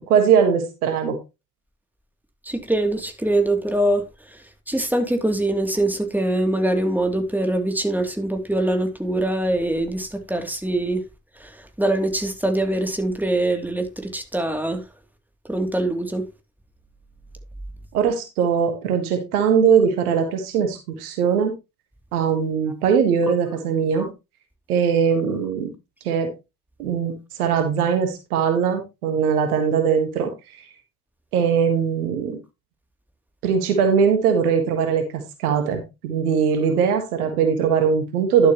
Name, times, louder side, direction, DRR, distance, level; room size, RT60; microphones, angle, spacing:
voice 1, 0.1-1.2 17.9-21.6 22.1-24.1 24.7-25.7 26.1-26.3 26.8-30.3 31.3-32.4 33.4-38.5, right 7 dB, 85° right, 1.7 m, -20 dB
voice 2, 2.4-4.4 4.7-11.0 11.4-14.8 15.5-16.2, right 1 dB, 5° right, 2.8 m, -23 dB
11.5 x 7.7 x 3.0 m
hypercardioid pair, 40°, 44 cm